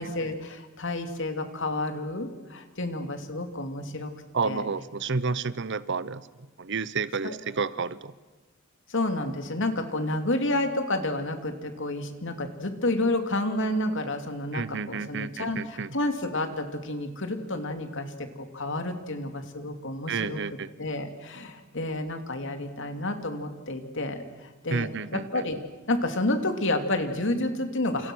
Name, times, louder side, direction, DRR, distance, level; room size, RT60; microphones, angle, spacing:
voice 1, 0.0-4.1 4.4-4.7 7.2-7.3 8.9-20.4 20.8-25.6 25.9-28.1, left 2 dB, 60° left, 7 dB, 2.8 m, -30 dB
voice 2, 4.3-6.2 6.6-8.1 14.5-15.9 20.1-20.7 24.7-25.4, right 4 dB, 60° right, 17 dB, 0.9 m, -30 dB
29.5 x 28.5 x 6.4 m, 1.2 s
head